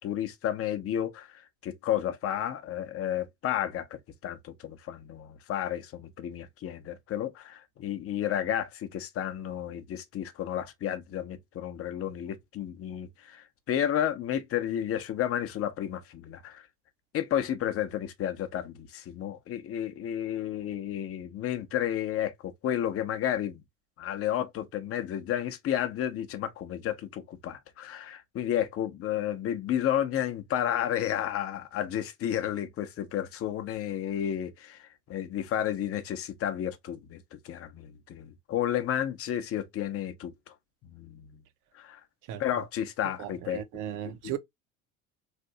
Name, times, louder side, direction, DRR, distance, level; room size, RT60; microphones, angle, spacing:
voice 1, 0.0-16.7 17.1-23.6 24.0-40.5 40.8-41.4 41.7-42.0 42.4-43.6 44.1-44.4, left 10 dB, 35° left, 0.7 m, -32 dB
voice 2, 43.2-44.4, right 11 dB, 50° right, 0.6 m, -36 dB
3.3 x 2.6 x 2.5 m
figure-of-eight pair, 65°, 41 cm